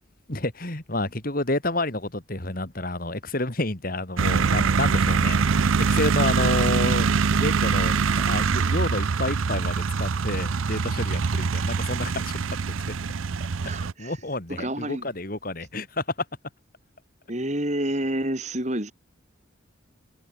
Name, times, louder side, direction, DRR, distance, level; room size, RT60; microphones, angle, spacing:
voice 1, 0.3-12.5 14.0-16.0, left 2 dB, 45° left, 2.9 m, -30 dB
sound 1, 4.2-13.9, right 5 dB, 85° right, 0.6 m, -23 dB
voice 2, 13.6-14.2 14.5-15.1 17.3-18.9, right 1 dB, 35° right, 3.6 m, -29 dB
head